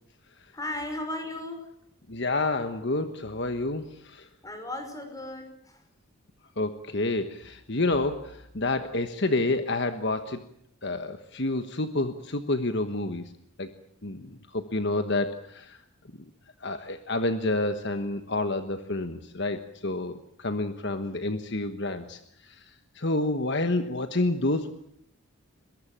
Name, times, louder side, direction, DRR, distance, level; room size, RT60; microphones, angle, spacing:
voice 1, 0.5-1.7 4.4-5.8, left 1 dB, 15° left, 6 dB, 5.5 m, -36 dB
voice 2, 2.1-4.3 6.6-10.4 10.8-13.3 13.6-13.7 14.0-15.8 16.6-24.7, left 2 dB, 50° left, 9 dB, 1.3 m, -29 dB
22.5 x 22.0 x 8.7 m, 0.74 s
head